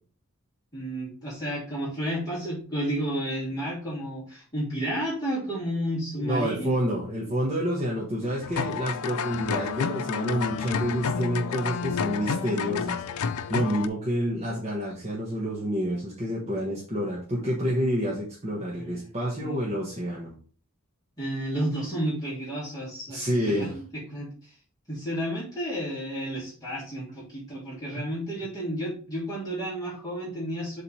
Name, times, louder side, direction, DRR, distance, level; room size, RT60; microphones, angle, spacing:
voice 1, 0.7-6.7 8.2-8.7 18.7-19.6 21.2-24.5 24.9-30.8, right 1 dB, 15° left, -8 dB, 3.0 m, -32 dB
voice 2, 6.2-13.0 13.5-20.3 23.1-23.8, equal, 30° right, -4 dB, 1.5 m, -28 dB
sound 1, 8.4-13.9, left 6 dB, 85° left, 0.6 m, -30 dB
7.2 x 3.8 x 4.8 m, 0.40 s
head